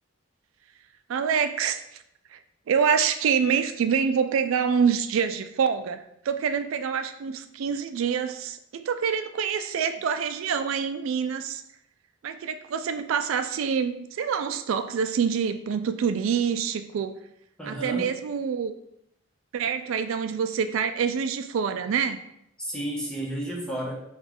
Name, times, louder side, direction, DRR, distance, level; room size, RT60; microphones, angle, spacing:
voice 1, 1.1-2.0 2.3-2.4 2.7-11.6 12.2-17.2 17.6-18.8 19.5-22.2, right 6 dB, 80° right, 9 dB, 0.3 m, -26 dB
voice 2, 17.6-18.1 22.6-24.0, right 1 dB, 5° left, -2 dB, 0.9 m, -32 dB
5.9 x 2.3 x 3.7 m, 0.77 s
head